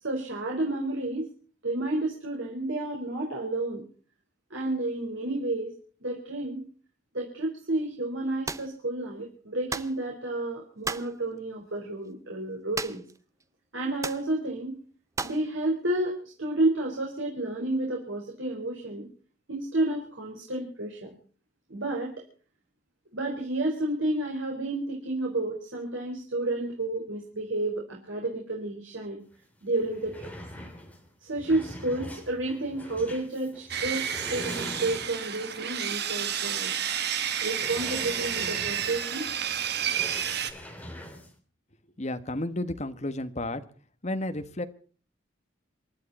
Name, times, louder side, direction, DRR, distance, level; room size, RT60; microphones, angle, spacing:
voice 1, 0.0-1.3 1.6-3.8 4.5-5.7 6.0-6.7 7.1-13.0 13.7-14.8 15.2-19.1 19.5-21.1 21.7-22.1 23.1-29.2 29.6-30.3 31.2-36.8 37.4-39.3, right 2 dB, 85° right, -1 dB, 4.6 m, -31 dB
sound 1, 8.5-8.7 9.7-10.0 10.8-11.1 12.7-13.2 13.4-13.5 14.0-14.3 15.2-15.5, right 4 dB, 15° right, 0.7 m, -34 dB
sound 2, 29.3-29.4 29.7-35.4 35.9-36.0 36.4-36.5 37.5-41.3, left 1 dB, 10° left, 3.1 m, -43 dB
Sawing, 33.7-40.5, right 9 dB, 55° right, 1.5 m, -31 dB
voice 2, 42.0-43.6 44.0-44.6, left 1 dB, 35° left, 9 dB, 1.4 m, -32 dB
27.5 x 11.5 x 4.2 m, 0.42 s
head